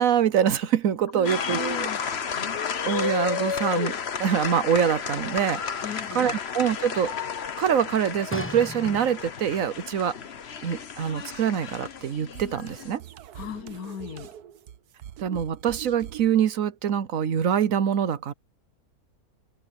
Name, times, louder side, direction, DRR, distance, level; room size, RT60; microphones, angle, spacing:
voice 1, 0.0-1.9 2.8-5.9 6.1-7.1 7.6-10.2 10.6-13.0 15.2-18.3, right 8 dB, 65° right, 1.2 m, -25 dB
voice 2, 1.1-2.0 5.8-6.4 13.3-14.3, left 9 dB, 70° left, 1.2 m, -37 dB
sound 1, 1.2-13.0, left 6 dB, 45° left, 1.2 m, -32 dB
sound 2, 8.3-9.6 10.3-10.4, left 1 dB, 10° left, 1.0 m, -37 dB
sound 3, 11.0-16.3, right 11 dB, 90° right, 1.4 m, -44 dB
open air
omnidirectional pair, 1.6 m